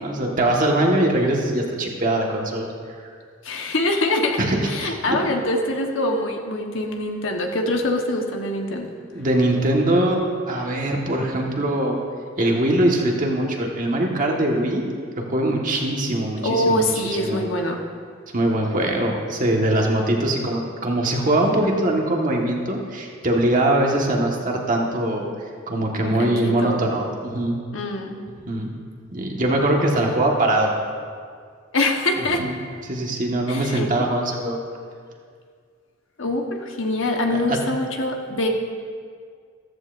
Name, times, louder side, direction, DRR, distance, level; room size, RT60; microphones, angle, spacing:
voice 1, 0.0-2.7 4.4-5.2 9.1-12.0 12.4-14.8 15.1-16.9 17.2-17.4 18.3-27.6 28.5-28.7 29.1-30.7 32.4-32.6 32.8-34.6 37.5-37.6, right 1 dB, 45° right, 0 dB, 1.5 m, -22 dB
voice 2, 3.4-4.4 4.7-8.9 16.4-17.8 26.2-26.8 27.7-28.2 31.7-32.4 33.5-34.1 36.2-38.5, left 1 dB, 75° left, 2 dB, 1.2 m, -24 dB
14.5 x 14.0 x 2.6 m, 2.1 s
head